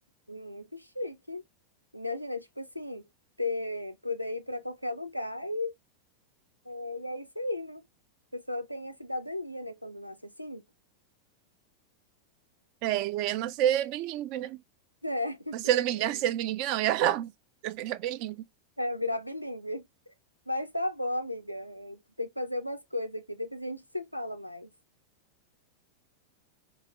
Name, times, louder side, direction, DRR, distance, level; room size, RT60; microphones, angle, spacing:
voice 1, 0.3-1.4 1.9-3.1 3.4-5.7 6.6-7.8 8.3-10.6 15.0-15.6 16.0-16.2 18.8-20.1 20.5-24.7, left 1 dB, 90° left, 0.4 m, -35 dB
voice 2, 12.8-14.6 15.5-17.3 17.6-18.4, right 12 dB, 45° right, 0.3 m, -28 dB
4.6 x 2.0 x 2.2 m
figure-of-eight pair, 90°, 0 cm